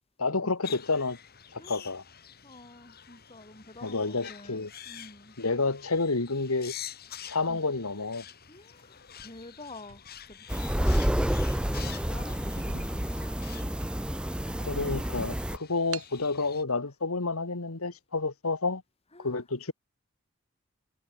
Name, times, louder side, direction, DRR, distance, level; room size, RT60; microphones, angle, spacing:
voice 1, 0.2-1.2 1.5-2.0 3.8-4.7 5.4-6.7 7.3-8.2 14.6-18.8 19.2-19.7, left 3 dB, 85° left, 1.8 m, -29 dB
sound 1, 0.6-16.6, left 10 dB, 45° left, 3.1 m, -48 dB
voice 2, 2.4-5.4 7.5-7.6 8.5-13.7 19.1-19.4, left 2 dB, 30° left, 6.9 m, -49 dB
sound 2, 9.9-11.1 11.8-12.0 12.3-12.4 12.6-14.4 14.9-15.0 15.9-16.2, right 8 dB, 75° right, 7.7 m, -47 dB
sound 3, 10.5-15.6, equal, 5° right, 0.8 m, -29 dB
head